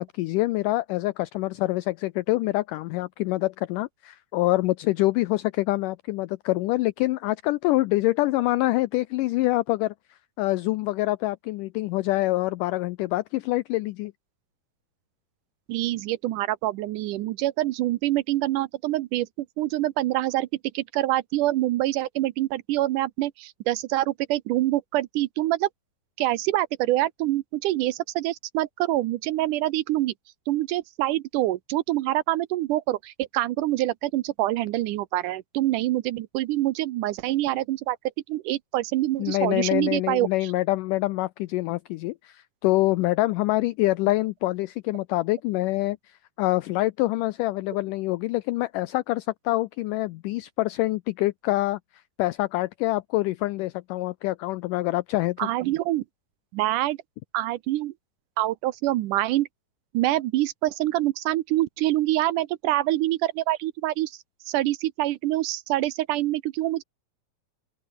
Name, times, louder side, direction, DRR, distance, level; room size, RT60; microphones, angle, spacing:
voice 1, 0.0-9.9 10.4-14.1 39.2-51.8 52.2-55.5, left 19 dB, 85° left, 1.8 m, -25 dB
voice 2, 15.7-19.3 19.6-20.5 20.7-25.7 26.2-30.1 30.5-38.0 38.3-40.3 55.4-56.0 56.5-57.0 57.3-57.9 58.4-59.5 59.9-64.2 64.5-66.8, right 15 dB, 75° right, 2.0 m, -25 dB
open air
omnidirectional pair, 4.4 m